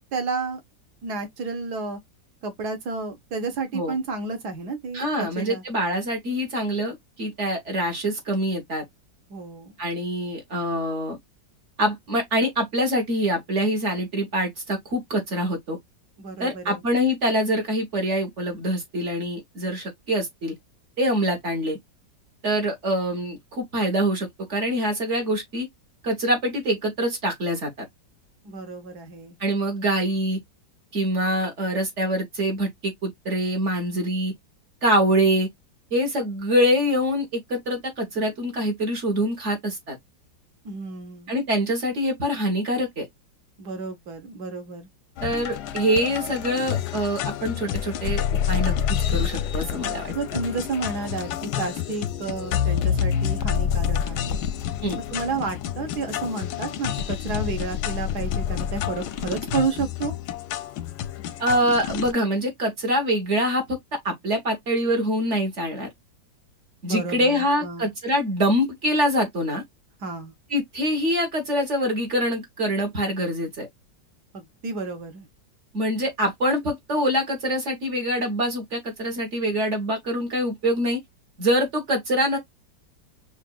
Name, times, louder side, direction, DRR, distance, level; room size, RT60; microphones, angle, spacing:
voice 1, 0.1-0.6 1.0-2.0 2.4-5.6 9.3-9.7 16.2-16.8 28.4-29.4 40.6-41.3 43.6-44.9 50.1-54.4 54.9-60.1 66.8-67.9 70.0-70.3 74.3-75.3, right 4 dB, 60° right, 1.5 m, -31 dB
voice 2, 4.9-8.8 9.8-11.2 11.8-15.8 16.4-20.5 21.0-21.8 22.4-25.7 26.0-27.7 29.4-30.4 30.9-34.3 34.8-35.5 35.9-40.0 41.3-43.0 45.2-48.7 49.1-50.1 54.8-55.0 61.4-63.8 64.0-65.9 66.8-69.6 70.5-73.7 75.7-81.0 81.4-82.4, equal, 45° right, 1.3 m, -24 dB
sound 1, 45.2-62.1, left 9 dB, 75° left, 1.0 m, -28 dB
5.7 x 2.5 x 2.3 m
omnidirectional pair, 2.1 m